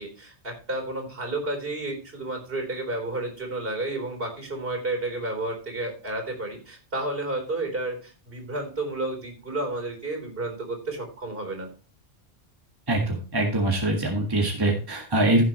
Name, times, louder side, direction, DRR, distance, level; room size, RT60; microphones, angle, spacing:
voice 1, 0.0-11.7, right 2 dB, 55° right, 3 dB, 4.2 m, -31 dB
voice 2, 12.9-15.4, right 1 dB, 20° right, 1 dB, 1.7 m, -23 dB
15.5 x 7.3 x 3.1 m, 0.35 s
omnidirectional pair, 1.2 m